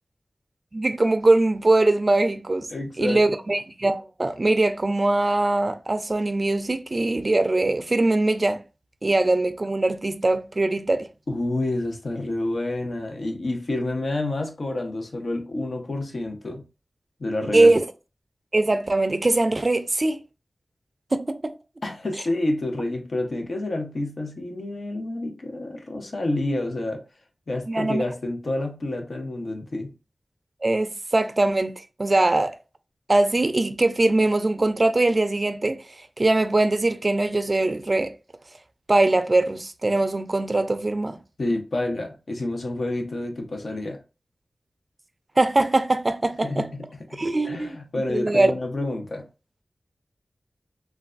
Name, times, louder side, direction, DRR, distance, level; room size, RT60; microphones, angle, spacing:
voice 1, 0.7-2.7 3.0-8.6 9.0-11.1 17.5-17.8 18.5-20.2 21.1-21.5 27.7-28.0 30.6-31.7 32.0-32.5 33.1-35.8 36.2-38.1 38.9-41.2 45.4-46.7 47.1-47.8 48.1-48.5, right 2 dB, 35° right, 0.3 m, -21 dB
voice 2, 2.7-3.2 11.3-16.6 17.2-17.8 21.8-27.0 27.5-29.9 41.4-44.0 46.4-49.2, left 2 dB, 65° left, 0.7 m, -29 dB
3.2 x 2.2 x 2.5 m
wide cardioid pair, 85°, 0 cm